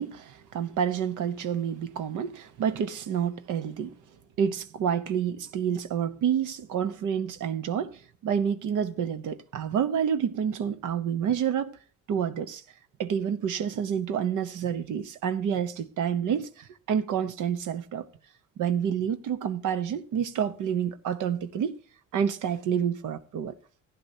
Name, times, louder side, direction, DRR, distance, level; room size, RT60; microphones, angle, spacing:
voice 1, 0.0-3.9 4.4-11.8 12.1-12.6 13.0-18.1 18.6-21.8 22.1-23.5, right 8 dB, 85° right, 1.0 m, -28 dB
15.5 x 10.5 x 2.8 m
cardioid pair, 90°, 30 cm